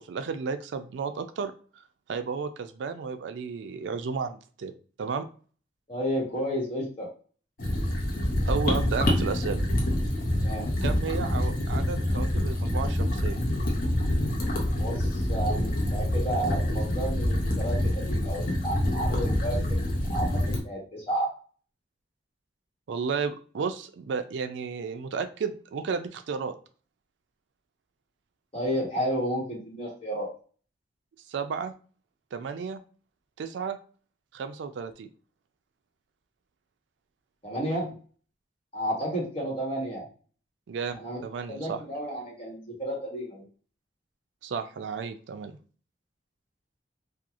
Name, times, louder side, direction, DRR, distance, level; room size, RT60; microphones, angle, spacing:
voice 1, 0.1-1.5 2.1-4.7 5.0-5.2 8.5-9.6 10.8-13.4 22.9-26.5 31.3-31.7 32.3-32.8 33.4-33.8 34.3-35.1 40.7-41.8 44.4-45.6, right 5 dB, 75° right, 9 dB, 0.4 m, -33 dB
voice 2, 5.9-7.1 10.4-10.7 14.8-19.8 20.0-21.3 28.5-30.3 37.4-38.0 38.7-40.1 40.9-41.2 41.5-43.4, equal, 30° left, -3 dB, 1.2 m, -32 dB
sound 1, 7.6-20.6, left 1 dB, 50° left, 0.7 m, -26 dB
2.8 x 2.3 x 2.4 m, 0.40 s
head